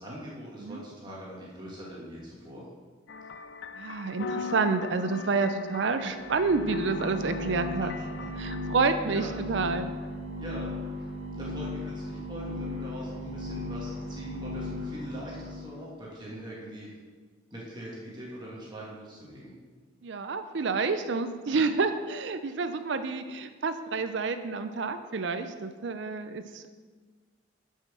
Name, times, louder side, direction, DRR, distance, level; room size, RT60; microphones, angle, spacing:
voice 1, 0.0-2.7 9.1-9.5 10.4-11.0 11.3-16.9 17.5-19.6, equal, 20° right, -5 dB, 1.6 m, -42 dB
sound 1, 3.1-8.8, left 4 dB, 60° left, 0.4 m, -39 dB
voice 2, 3.8-7.9 8.4-9.9 20.0-26.7, right 4 dB, 60° right, 10 dB, 0.5 m, -29 dB
sound 2, 6.0-15.7, left 1 dB, 5° right, 1.6 m, -37 dB
7.2 x 5.6 x 6.2 m, 1.5 s
head